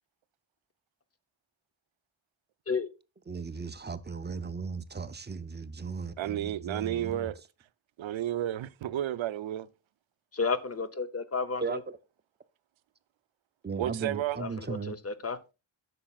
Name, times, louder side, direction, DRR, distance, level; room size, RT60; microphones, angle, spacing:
voice 1, 3.3-7.3 11.6-12.0 13.6-15.0, right 5 dB, 25° right, 0.4 m, -37 dB
voice 2, 6.2-7.3 8.0-9.7 13.8-14.4, right 12 dB, 75° right, 0.6 m, -32 dB
voice 3, 10.3-11.8 14.4-15.4, left 4 dB, 30° left, 0.6 m, -32 dB
11.5 x 6.8 x 2.3 m
wide cardioid pair, 140°, 47 cm